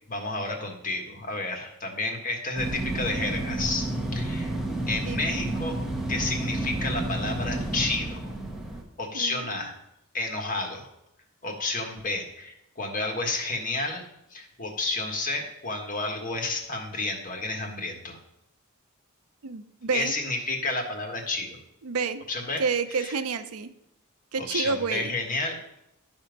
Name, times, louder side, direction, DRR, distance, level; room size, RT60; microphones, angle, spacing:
voice 1, 0.1-5.8 6.1-8.2 9.0-9.8 10.1-10.9 11.4-18.2 19.9-21.6 22.3-22.6 22.9-23.1 24.4-25.8, left 2 dB, 40° left, 3 dB, 1.5 m, -31 dB
sound 1, 2.6-8.8, right 1 dB, ahead, 1.1 m, -30 dB
voice 2, 5.0-5.4 9.1-9.4 19.4-20.1 21.8-22.2 22.6-23.7 24.3-25.1, right 5 dB, 75° right, 11 dB, 0.6 m, -29 dB
11.5 x 4.4 x 5.2 m, 0.81 s
head